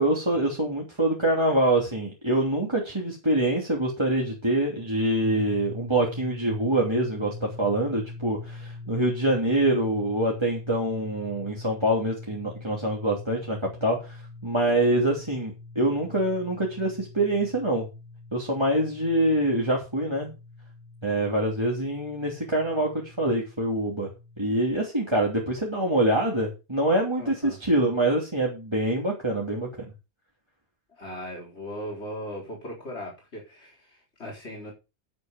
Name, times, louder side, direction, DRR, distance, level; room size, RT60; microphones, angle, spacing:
voice 1, 0.0-17.9 18.3-20.3 21.0-24.1 24.4-29.7, right 1 dB, 25° right, 3.0 m, -25 dB
sound 1, 5.2-24.5, left 3 dB, 5° right, 2.5 m, -43 dB
voice 2, 27.2-27.6 31.0-34.7, equal, 85° left, 4.5 m, -38 dB
11.0 x 8.3 x 5.2 m
omnidirectional pair, 1.1 m